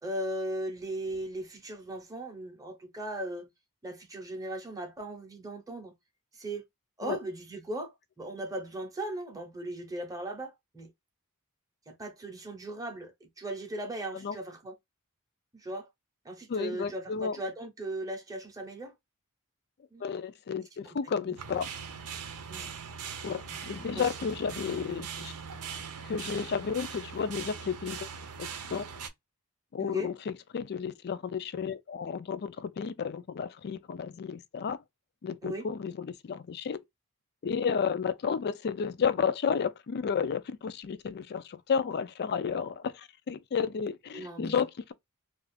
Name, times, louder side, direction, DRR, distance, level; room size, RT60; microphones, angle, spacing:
voice 1, 0.0-3.5 3.8-5.9 6.3-6.6 7.0-10.9 11.9-14.8 15.5-15.9 16.2-18.9 19.9-20.2 21.3-21.4 22.5-22.7 23.5-23.6 23.9-24.1 29.8-30.1 35.4-35.7 44.1-44.6, right 1 dB, 15° right, 0.7 m, -38 dB
voice 2, 16.5-17.4 20.0-21.7 23.2-25.3 26.1-28.1 28.4-28.9 29.7-34.8 35.2-36.8 37.4-44.9, left 6 dB, 50° left, 0.4 m, -32 dB
sound 1, 21.4-29.1, right 6 dB, 85° right, 0.6 m, -41 dB
2.4 x 2.4 x 3.3 m
head